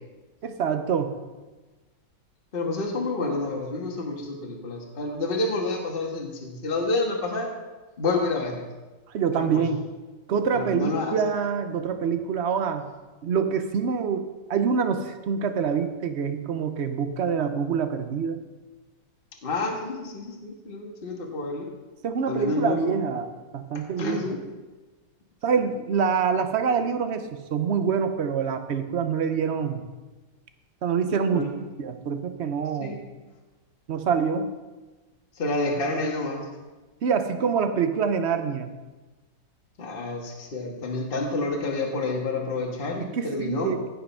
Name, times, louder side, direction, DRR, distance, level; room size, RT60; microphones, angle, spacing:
voice 1, 0.4-1.1 9.1-9.8 10.3-12.9 13.2-18.4 22.0-23.3 23.5-24.2 25.4-29.8 30.8-33.0 33.9-34.5 37.0-38.7 43.1-43.9, right 6 dB, 55° right, 8 dB, 0.7 m, -26 dB
voice 2, 2.5-7.5 8.0-8.7 9.3-9.6 10.5-11.2 19.4-21.7 22.3-23.0 23.7-24.4 31.3-31.5 32.8-33.0 35.3-36.5 39.8-43.7, left 3 dB, 30° left, 1 dB, 1.5 m, -29 dB
15.5 x 5.6 x 5.6 m, 1.2 s
omnidirectional pair, 2.0 m